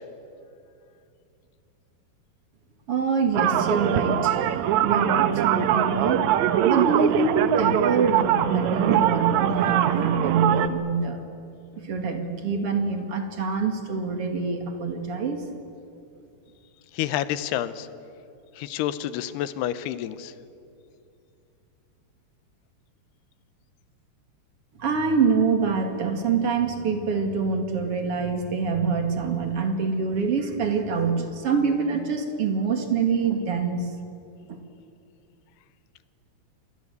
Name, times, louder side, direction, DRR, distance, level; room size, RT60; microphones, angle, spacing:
voice 1, 2.9-4.5 4.8-6.3 6.6-11.2 11.8-15.4 24.8-33.9 34.5-34.6, right 5 dB, 40° right, 5 dB, 2.6 m, -25 dB
sound 1, 3.3-10.7, right 11 dB, 80° right, 1.7 m, -22 dB
voice 2, 16.9-17.9 18.6-20.3, left 12 dB, 85° left, 14 dB, 2.9 m, -29 dB
27.5 x 21.0 x 8.2 m, 2.6 s
omnidirectional pair, 4.6 m